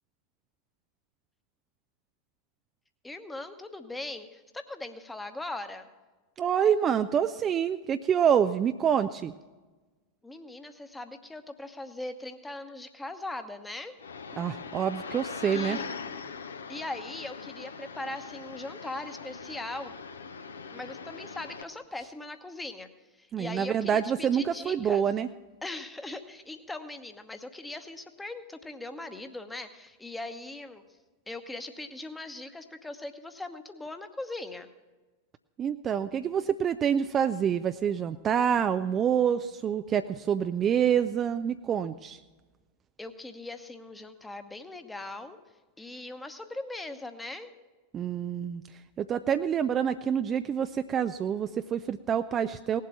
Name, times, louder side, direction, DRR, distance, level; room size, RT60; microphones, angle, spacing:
voice 1, 3.0-5.9 10.2-14.0 15.5-15.8 16.7-19.9 20.7-22.9 23.2-25.0 25.6-30.8 31.3-34.7 43.0-45.4 45.8-47.5, left 2 dB, 10° left, 8 dB, 1.0 m, -40 dB
voice 2, 6.4-9.3 14.4-15.8 23.3-25.3 35.6-42.2 47.9-52.8, right 8 dB, 25° right, 10 dB, 0.4 m, -27 dB
sound 1, 14.0-21.6, left 5 dB, 70° left, 0.8 m, -41 dB
18.5 x 7.6 x 5.8 m, 1.2 s
figure-of-eight pair, 90°, 0 cm